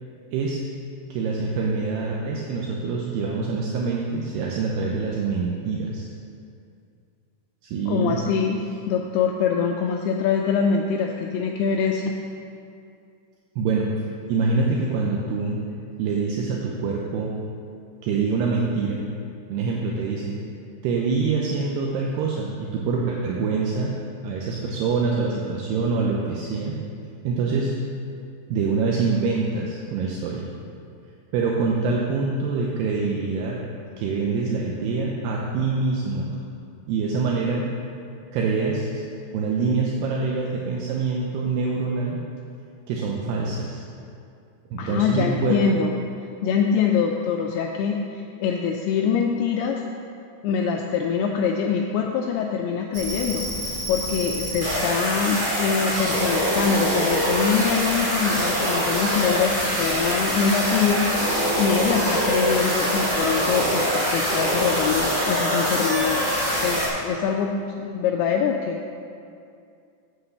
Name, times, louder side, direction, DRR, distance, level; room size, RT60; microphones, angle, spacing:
voice 1, 1.1-6.1 7.6-8.2 13.6-13.9 14.3-15.6 16.0-17.3 18.0-19.1 19.5-20.4 20.8-24.0 24.2-26.8 27.2-27.8 28.5-30.5 31.3-33.6 34.0-36.3 36.9-37.7 38.3-39.0 39.3-42.2 42.9-43.8 44.7-45.6, right 4 dB, 80° right, -2 dB, 2.6 m, -25 dB
voice 2, 7.9-12.1 44.8-45.9 46.4-49.8 50.4-66.3 66.6-68.8, left 6 dB, 90° left, 1 dB, 2.2 m, -24 dB
sound 1, 52.9-66.9, equal, 30° right, 2.2 m, -24 dB
8.2 x 7.9 x 6.7 m, 2.5 s
omnidirectional pair, 5.2 m